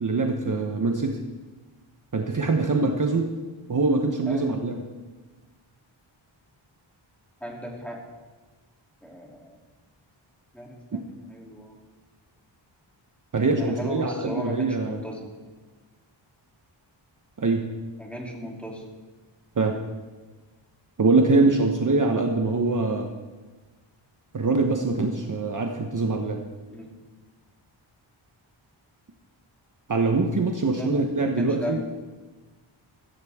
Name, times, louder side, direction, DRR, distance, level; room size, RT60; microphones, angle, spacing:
voice 1, 0.0-1.2 2.1-3.3 3.7-4.7 13.3-15.0 17.4-17.6 19.6-19.7 21.0-23.1 24.3-26.4 29.9-31.8, right 3 dB, 40° right, 3 dB, 1.1 m, -23 dB
voice 2, 7.4-8.0 9.0-9.6 10.5-11.0 11.3-11.8 13.6-15.4 18.0-18.8 26.7-26.9 30.5-30.9 31.4-31.8, equal, 5° left, -2 dB, 3.0 m, -36 dB
15.5 x 15.0 x 3.6 m, 1.3 s
wide cardioid pair, 110°, 47 cm